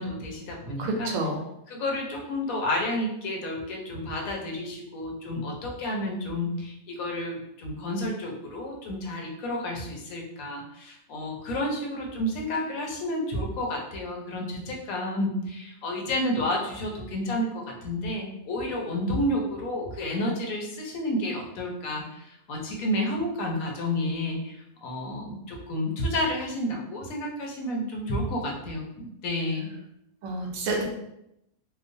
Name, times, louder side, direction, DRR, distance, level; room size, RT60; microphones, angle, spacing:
voice 1, 0.0-1.1 1.7-29.7, left 1 dB, 85° left, 0 dB, 1.1 m, -30 dB
voice 2, 0.8-1.4 30.2-30.8, right 2 dB, 90° right, 1 dB, 1.1 m, -28 dB
3.0 x 2.1 x 2.5 m, 0.81 s
omnidirectional pair, 1.4 m